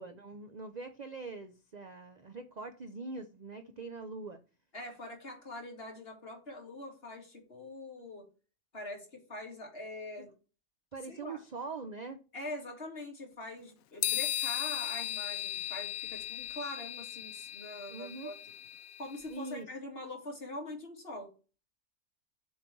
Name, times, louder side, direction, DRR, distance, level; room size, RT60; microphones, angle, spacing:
voice 1, 0.0-4.4 10.9-12.2 17.9-18.3 19.3-19.7, right 3 dB, 50° right, 0.5 m, -43 dB
voice 2, 4.7-8.3 8.7-10.3 11.0-11.4 12.3-18.3 19.0-21.3, left 2 dB, 40° left, 2.2 m, -43 dB
sound 1, 14.0-19.3, left 14 dB, 75° left, 1.0 m, -37 dB
7.5 x 3.2 x 6.0 m
omnidirectional pair, 1.5 m